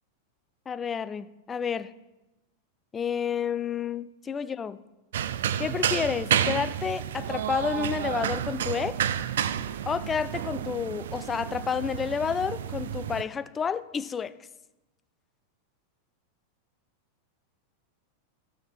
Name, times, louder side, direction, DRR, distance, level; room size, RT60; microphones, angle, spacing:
voice 1, 0.7-1.9 2.9-4.8 5.6-9.0 9.9-14.3, left 7 dB, 20° left, 14 dB, 0.4 m, -30 dB
sound 1, 5.1-13.2, right 9 dB, 60° right, 0.4 m, -30 dB
12.5 x 6.4 x 4.7 m, 1.0 s
figure-of-eight pair, 90°, 0 cm